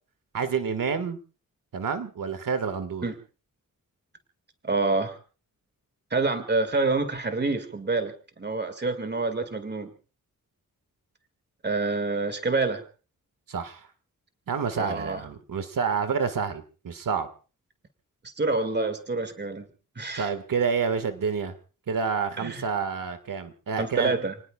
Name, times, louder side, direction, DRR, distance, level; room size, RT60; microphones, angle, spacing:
voice 1, 0.3-1.2 1.7-3.0 13.5-13.9 14.5-17.3 20.2-21.5 21.9-24.1, right 6 dB, 75° right, 10 dB, 1.9 m, -28 dB
voice 2, 4.6-5.2 6.1-9.9 11.6-12.8 14.8-15.2 18.4-19.7 20.0-20.3 22.4-22.6 23.8-24.3, right 3 dB, 30° right, 8 dB, 2.2 m, -27 dB
29.5 x 19.5 x 2.4 m, 0.36 s
wide cardioid pair, 155°, 33 cm